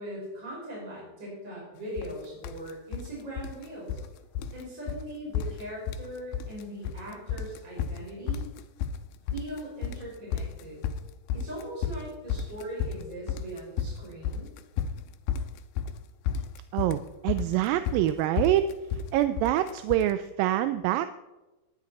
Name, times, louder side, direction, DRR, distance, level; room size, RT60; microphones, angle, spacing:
voice 1, 0.0-4.0 4.5-8.5 9.3-10.8 11.3-14.5, right 1 dB, 30° right, -5 dB, 5.7 m, -40 dB
sound 1, 2.0-2.1 2.4-3.1 3.4-4.1 4.4-4.6 4.9-5.0 5.3-6.1 6.3-7.0 7.3-20.1, left 7 dB, 85° left, 2.5 m, -32 dB
voice 2, 16.7-18.7 19.1-21.1, right 13 dB, 80° right, 11 dB, 2.2 m, -25 dB
19.0 x 11.0 x 4.2 m, 1.1 s
omnidirectional pair, 4.3 m